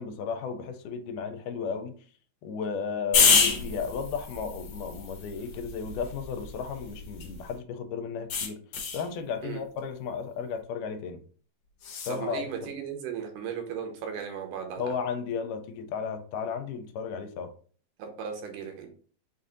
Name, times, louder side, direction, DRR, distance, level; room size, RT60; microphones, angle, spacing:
voice 1, 0.0-2.0 2.4-8.6 8.9-11.2 12.1-12.7 14.8-17.5, left 6 dB, 80° left, 8 dB, 2.0 m, -34 dB
sound 1, 3.1-7.5 8.3-9.1 11.8-12.2, left 5 dB, 65° left, 1.5 m, -28 dB
voice 2, 12.1-14.9 18.0-18.9, right 7 dB, 80° right, 4 dB, 2.3 m, -36 dB
5.4 x 2.5 x 3.7 m, 0.43 s
omnidirectional pair, 3.7 m